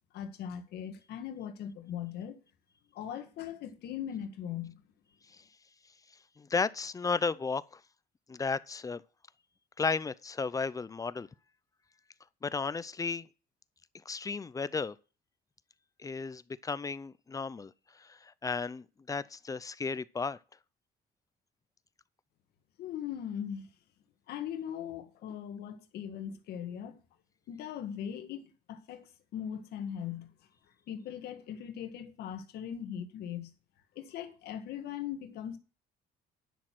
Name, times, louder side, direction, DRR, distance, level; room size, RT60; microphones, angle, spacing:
voice 1, 0.1-2.4 2.9-4.8 22.8-23.7 24.3-27.0 27.5-30.3 30.9-33.5 33.9-35.6, left 9 dB, 75° left, 1.7 m, -40 dB
voice 2, 6.4-7.8 8.3-9.0 9.8-11.3 12.4-13.3 14.1-15.0 16.0-17.7 18.0-20.4, left 4 dB, 20° left, 0.5 m, -34 dB
10.0 x 6.5 x 6.0 m
cardioid pair, 110°, 17 cm